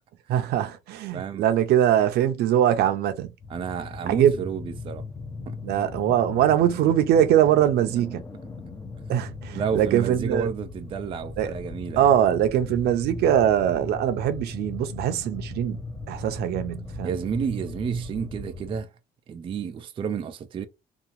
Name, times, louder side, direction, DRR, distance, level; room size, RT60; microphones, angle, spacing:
voice 1, 0.3-3.3 4.0-4.3 5.6-8.2 9.1-10.5 11.4-11.5 12.0-15.8 16.1-17.1, right 10 dB, 75° right, 0.6 m, -22 dB
voice 2, 1.1-1.4 3.5-5.0 5.5-5.6 9.5-12.1 17.0-18.9 19.3-20.7, right 6 dB, 30° right, 0.3 m, -30 dB
sound 1, 3.4-18.8, left 3 dB, 20° left, 0.6 m, -38 dB
2.8 x 2.4 x 2.4 m
cardioid pair, 110°, 17 cm